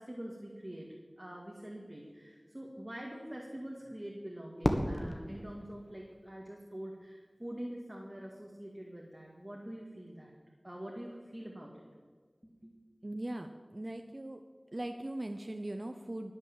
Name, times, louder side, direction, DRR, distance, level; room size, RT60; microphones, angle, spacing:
voice 1, 0.0-10.3 10.6-11.8 12.4-12.7, right 1 dB, 20° right, -1 dB, 2.1 m, -45 dB
Fireworks, 4.6-6.8, left 1 dB, 35° left, 1.6 m, -35 dB
voice 2, 13.0-14.4 14.7-16.3, right 1 dB, 45° right, 5 dB, 0.7 m, -40 dB
19.5 x 6.7 x 7.5 m, 1.5 s
wide cardioid pair, 50°, 0 cm